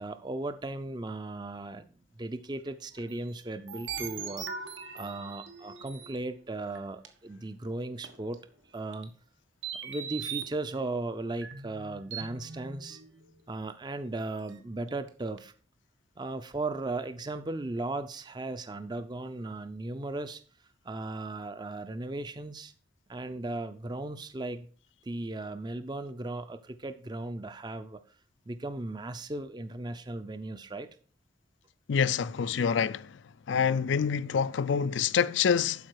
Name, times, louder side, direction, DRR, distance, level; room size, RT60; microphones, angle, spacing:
voice 1, 0.0-1.9 2.2-4.5 4.9-8.5 8.7-9.1 9.8-13.0 13.5-15.5 16.2-20.4 20.8-22.7 23.1-24.7 25.0-28.0 28.5-30.9, right 2 dB, 20° right, 0.5 m, -36 dB
sound 1, 3.0-6.2 6.8-6.9 7.0-7.1 8.0-8.4 8.9-9.1 9.6-10.5 11.4-13.4 13.7-13.8 14.4-14.5 14.9-15.1 15.4-15.5, right 7 dB, 85° right, 1.6 m, -40 dB
voice 2, 31.9-33.2 33.5-35.9, left 7 dB, 75° left, 0.4 m, -27 dB
12.0 x 4.9 x 4.6 m
head